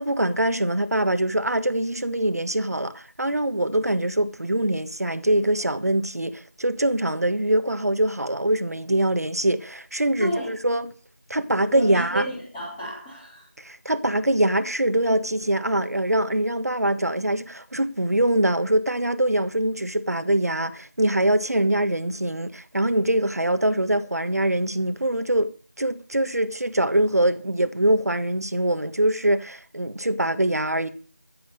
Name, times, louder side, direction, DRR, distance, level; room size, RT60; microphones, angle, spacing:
voice 1, 0.0-10.9 11.3-12.2 13.6-25.5 25.8-30.9, right 1 dB, 75° right, 1.4 m, -23 dB
voice 2, 10.2-10.5 11.7-13.5, equal, 5° left, 2.5 m, -31 dB
14.0 x 7.9 x 6.5 m
figure-of-eight pair, 175°, 9 cm